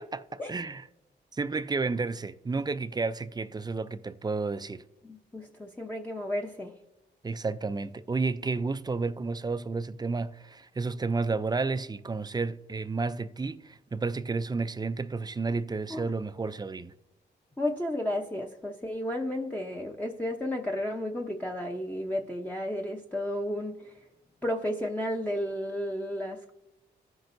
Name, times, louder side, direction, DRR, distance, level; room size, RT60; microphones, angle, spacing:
voice 1, 0.1-0.8 1.3-4.8 7.2-16.9, right 4 dB, 20° right, 0.4 m, -31 dB
voice 2, 5.0-6.7 15.9-16.0 17.6-23.9 24.4-26.5, left 1 dB, 10° left, 0.7 m, -32 dB
14.5 x 5.9 x 2.6 m
cardioid pair, 75°, 19 cm